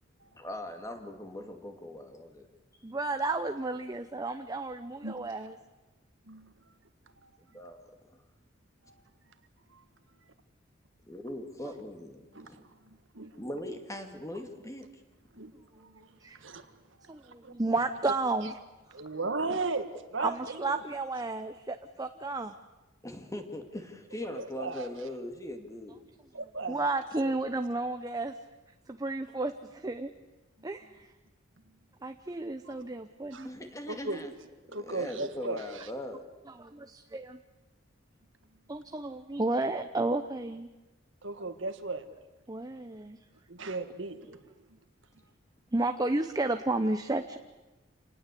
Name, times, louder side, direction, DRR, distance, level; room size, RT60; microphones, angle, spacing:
voice 1, 0.4-2.5 7.4-7.9 11.1-12.7 13.4-14.9 23.0-26.0 33.4-34.3 34.7-36.3, left 1 dB, 15° left, 5 dB, 2.4 m, -40 dB
voice 2, 2.8-5.6 16.2-16.4 17.1-18.5 20.2-22.5 26.7-28.4 28.9-30.1 30.6-31.1 32.0-33.5 36.6-37.4 38.7-40.7 42.5-43.2 45.7-47.4, right 2 dB, 20° right, 7 dB, 0.8 m, -32 dB
voice 3, 5.0-5.5 6.3-6.5 7.2-7.3 8.8-9.0 9.7-9.8 12.3-12.6 12.9-13.4 15.4-16.7 17.0-17.1 17.4-17.5 18.9-20.8 24.3-24.9 26.3-26.8 27.2-27.4 32.7-32.8 33.3-33.5 33.9-34.2 34.7-35.9 41.2-42.1 43.5-44.4, right 3 dB, 70° right, 8 dB, 1.9 m, -37 dB
28.0 x 19.5 x 8.4 m, 1.1 s
head